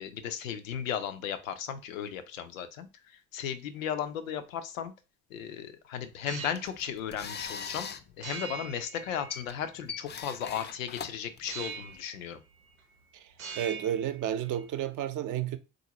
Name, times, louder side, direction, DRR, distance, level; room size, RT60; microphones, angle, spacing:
voice 1, 0.0-4.9 5.3-7.9 8.2-12.4, left 8 dB, 80° left, 0.5 m, -36 dB
sound 1, 6.1-6.7 8.2-9.7 11.5-12.2 12.5-13.0 13.3-14.7, right 5 dB, 85° right, 0.7 m, -42 dB
sound 2, 6.3-12.0, left 6 dB, 30° left, 0.4 m, -42 dB
voice 2, 13.6-15.6, right 10 dB, 50° right, 0.6 m, -31 dB
3.9 x 2.5 x 2.8 m
figure-of-eight pair, 45°, 39 cm